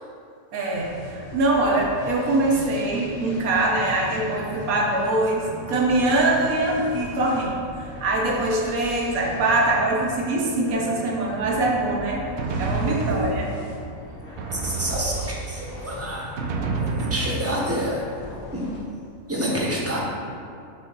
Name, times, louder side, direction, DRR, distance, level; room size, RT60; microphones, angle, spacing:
voice 1, 0.5-12.2 12.6-13.5, right 2 dB, 80° right, -2 dB, 1.4 m, -23 dB
sound 1, 0.7-18.8, left 2 dB, 90° left, 1.8 m, -39 dB
Drum, 11.9-13.8 14.4-15.7 16.4-17.9, right 3 dB, 65° right, 0.8 m, -29 dB
voice 2, 14.5-15.2 15.5-16.3 17.1-18.0 18.5-18.7 19.3-20.0, equal, 10° right, -4 dB, 0.8 m, -27 dB
4.8 x 4.2 x 5.5 m, 2.4 s
omnidirectional pair, 1.5 m